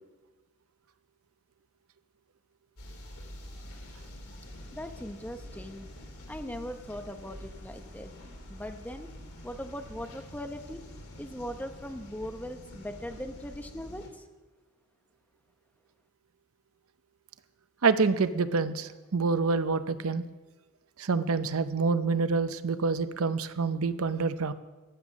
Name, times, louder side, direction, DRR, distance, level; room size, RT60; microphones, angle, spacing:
sound 1, 2.8-14.1, left 1 dB, 90° left, 2.8 m, -46 dB
voice 1, 4.7-5.9 6.3-8.1 8.5-9.1 9.4-10.8 11.2-14.2, equal, 5° left, 6 dB, 0.8 m, -40 dB
voice 2, 17.8-20.2 21.0-24.5, right 4 dB, 75° right, 12 dB, 0.6 m, -27 dB
14.5 x 10.5 x 6.2 m, 1.2 s
head